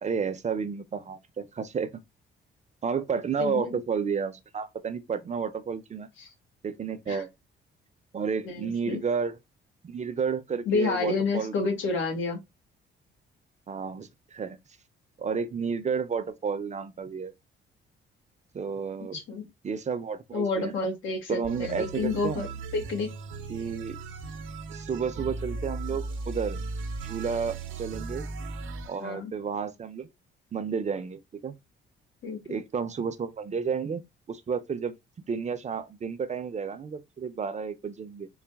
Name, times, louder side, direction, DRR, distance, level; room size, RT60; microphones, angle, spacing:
voice 1, 0.0-1.9 2.8-6.1 6.6-7.3 8.1-9.4 9.8-11.7 13.7-14.6 15.2-17.3 18.5-19.2 19.6-20.7 21.3-22.5 23.5-24.0 24.7-26.6 27.0-28.2 28.8-30.1 30.5-31.5 32.5-34.0 34.3-35.0 35.3-38.3, right 6 dB, 35° right, 0.6 m, -31 dB
voice 2, 3.4-3.8 6.2-6.3 7.1-7.2 8.4-9.0 10.6-12.4 19.1-19.5 20.3-23.1 29.0-29.3 32.2-32.6, left 4 dB, 80° left, 1.5 m, -30 dB
sound 1, 21.4-29.0, right 3 dB, 85° right, 0.6 m, -37 dB
3.9 x 2.1 x 3.4 m
cardioid pair, 90°, 20 cm